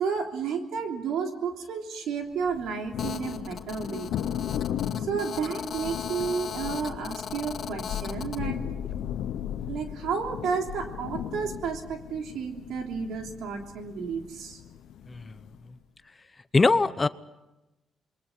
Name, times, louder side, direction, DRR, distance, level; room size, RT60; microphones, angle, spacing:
voice 1, 0.0-4.1 5.0-8.6 9.7-14.6, right 6 dB, 80° right, 3 dB, 3.3 m, -32 dB
Thunder, 2.5-15.7, left 10 dB, 80° left, 1.0 m, -36 dB
Telephone, 3.0-8.4, left 7 dB, 60° left, 2.0 m, -38 dB
voice 2, 16.5-17.1, left 3 dB, 25° left, 14 dB, 0.9 m, -22 dB
27.5 x 22.0 x 5.7 m, 1.0 s
cardioid pair, 85°, 0 cm